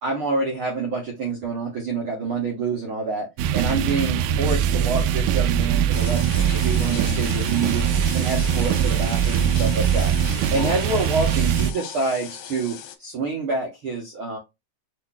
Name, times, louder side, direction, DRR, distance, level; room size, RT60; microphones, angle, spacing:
voice 1, 0.0-7.9 8.1-10.1 10.5-14.4, right 3 dB, 60° right, -1 dB, 1.4 m, -27 dB
sound 1, 3.4-11.7, right 8 dB, 80° right, 1.9 m, -22 dB
sound 2, 5.9-13.0, left 9 dB, 80° left, 2.5 m, -37 dB
5.9 x 3.9 x 2.3 m, 0.22 s
omnidirectional pair, 4.1 m